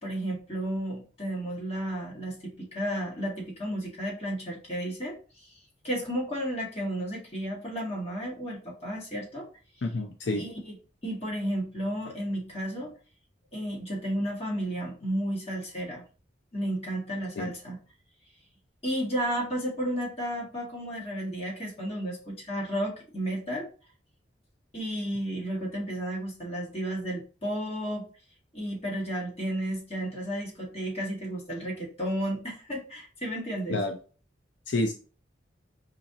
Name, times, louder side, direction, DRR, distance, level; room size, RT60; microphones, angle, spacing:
voice 1, 0.0-5.6 5.8-9.5 10.3-10.8 11.0-12.9 13.5-16.0 16.5-17.8 18.8-23.7 24.7-28.1 28.5-33.8, equal, 35° left, -3 dB, 1.9 m, -33 dB
voice 2, 9.8-10.4 17.4-17.5 33.7-34.0 34.7-34.9, left 2 dB, 75° left, 4 dB, 0.5 m, -28 dB
5.0 x 2.9 x 3.7 m, 0.37 s
head